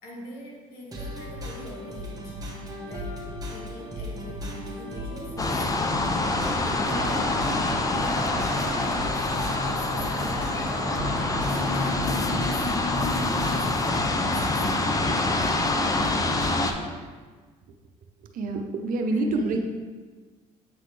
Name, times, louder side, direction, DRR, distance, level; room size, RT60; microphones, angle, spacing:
voice 1, 0.0-2.4 2.8-6.1 6.8-10.9 11.5-15.1 19.1-19.6, left 1 dB, 75° left, -3 dB, 1.7 m, -43 dB
sound 1, 0.9-16.9, equal, 25° right, 1.3 m, -37 dB
sound 2, 5.4-16.7, left 2 dB, 25° left, 0.5 m, -26 dB
sound 3, 6.2-12.1, equal, 5° left, 1.8 m, -35 dB
voice 2, 18.3-19.6, right 2 dB, 65° right, 4 dB, 0.7 m, -26 dB
7.5 x 4.0 x 3.2 m, 1.4 s
cardioid pair, 90°, 15 cm